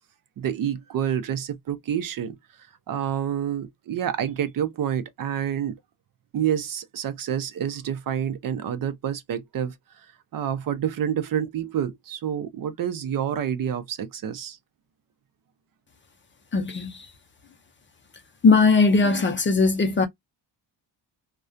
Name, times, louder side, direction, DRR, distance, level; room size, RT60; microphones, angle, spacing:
voice 1, 0.4-2.4 2.9-5.8 6.3-10.1 10.3-14.6, right 9 dB, 50° right, 0.6 m, -28 dB
voice 2, 16.5-17.0 18.4-20.1, left 4 dB, 30° left, 0.5 m, -19 dB
2.3 x 2.2 x 2.5 m
cardioid pair, 130°, 43 cm